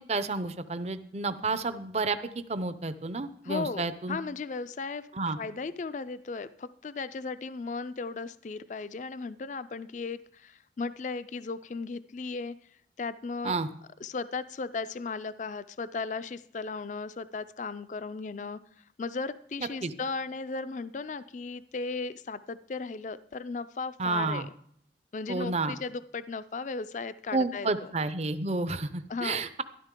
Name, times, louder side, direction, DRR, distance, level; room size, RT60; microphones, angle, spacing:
voice 1, 0.1-2.2 2.5-4.2 5.1-5.4 13.4-13.7 19.8-19.9 24.0-24.5 25.3-25.8 27.3-29.5, right 3 dB, 35° right, 12 dB, 0.6 m, -30 dB
voice 2, 3.4-5.1 5.4-12.6 13.0-13.6 14.0-18.6 19.0-24.5 25.1-27.9 29.1-29.4, left 4 dB, 40° left, 14 dB, 0.4 m, -36 dB
13.0 x 12.0 x 3.7 m, 0.66 s
head